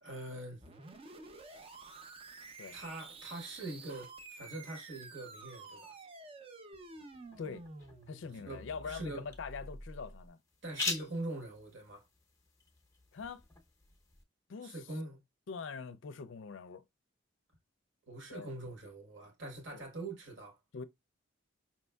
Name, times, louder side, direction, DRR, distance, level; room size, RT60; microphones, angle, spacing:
voice 1, 0.0-0.6 2.7-5.9 8.3-9.3 10.6-12.1 14.6-15.2 18.1-20.6, right 2 dB, 65° right, 1.4 m, -43 dB
sound 1, 0.6-10.3, right 2 dB, 30° right, 0.5 m, -50 dB
sound 2, 6.7-14.2, left 4 dB, 15° left, 0.7 m, -45 dB
voice 2, 8.1-10.4 13.1-13.4 14.5-14.7 15.5-16.8 18.3-18.5 19.7-19.8 20.7-20.8, left 5 dB, 70° left, 0.4 m, -43 dB
5.3 x 2.9 x 2.2 m
head